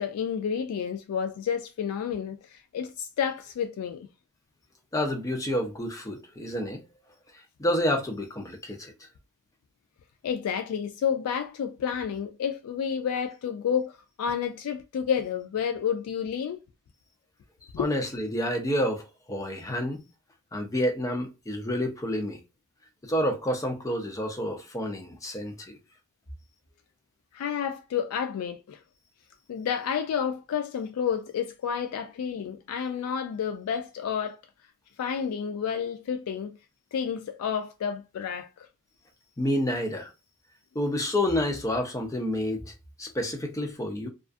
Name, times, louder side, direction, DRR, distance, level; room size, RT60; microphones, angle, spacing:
voice 1, 0.0-4.1 10.2-16.6 17.7-17.9 27.3-28.8 29.5-34.4 35.0-36.6 36.9-38.7, left 7 dB, 80° left, 0.3 m, -30 dB
voice 2, 4.9-6.8 7.6-9.1 17.8-20.0 20.5-22.4 23.0-25.8 39.4-40.1 40.7-42.7 43.0-44.1, left 1 dB, 15° left, 0.4 m, -29 dB
2.3 x 2.3 x 2.4 m
head